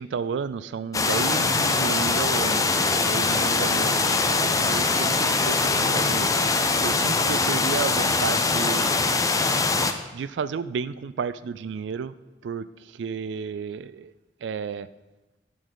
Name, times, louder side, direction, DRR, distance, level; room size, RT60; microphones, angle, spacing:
voice 1, 0.0-6.3 6.8-9.1 10.1-12.1 12.4-14.1 14.4-14.9, right 6 dB, 75° right, 16 dB, 0.3 m, -32 dB
sound 1, 0.9-9.9, left 3 dB, 20° left, 0.5 m, -22 dB
sound 2, 3.2-7.2, left 2 dB, 80° left, 2.5 m, -40 dB
11.5 x 5.1 x 3.9 m, 1.1 s
head